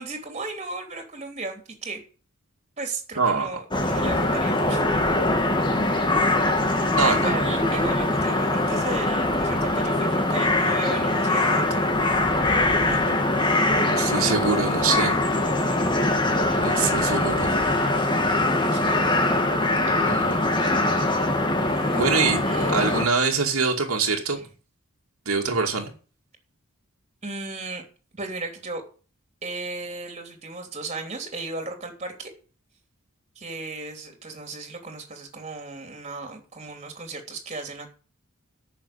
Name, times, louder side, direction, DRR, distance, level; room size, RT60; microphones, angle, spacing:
voice 1, 0.0-2.0 2.8-4.8 7.0-11.9 12.8-13.0 18.6-18.9 19.9-20.2 21.7-22.7 24.3-24.5 27.2-27.8 28.1-28.8 29.4-32.3 33.3-37.9, right 3 dB, 30° right, 3.1 m, -35 dB
voice 2, 3.2-3.5 7.0-7.3 12.9-13.3 13.7-15.1 16.5-17.5 20.0-20.4 21.9-22.4 22.7-24.4 25.3-25.9, right 4 dB, 75° right, 2.4 m, -24 dB
sound 1, 3.7-23.1, left 2 dB, 20° left, 1.7 m, -22 dB
9.9 x 6.7 x 8.6 m
head